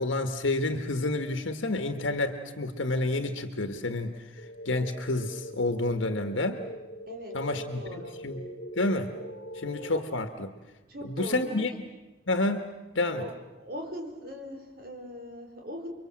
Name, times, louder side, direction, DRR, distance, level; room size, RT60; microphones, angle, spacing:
voice 1, 0.0-6.6 7.3-8.5 8.8-9.1 9.5-10.5 11.0-11.7 12.3-12.6 12.9-13.3, left 2 dB, 85° left, 7 dB, 1.5 m, -29 dB
sound 1, 4.4-10.0, equal, 35° left, 2.7 m, -42 dB
voice 2, 7.1-8.2 10.9-11.8 13.2-15.9, equal, 50° right, 2 dB, 4.5 m, -40 dB
30.0 x 23.5 x 7.6 m, 1.1 s
head